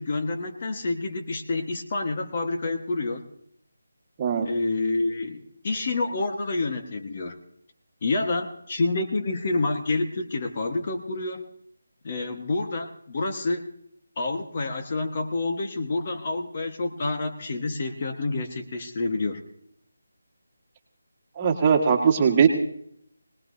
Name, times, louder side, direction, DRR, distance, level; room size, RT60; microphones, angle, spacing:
voice 1, 0.0-3.3 4.4-7.4 8.0-11.4 12.0-13.7 14.2-19.4, left 3 dB, 40° left, 5 dB, 1.3 m, -28 dB
voice 2, 21.4-22.5, right 6 dB, 25° right, 2 dB, 1.6 m, -20 dB
22.5 x 19.0 x 2.7 m, 0.68 s
figure-of-eight pair, 165°, 0 cm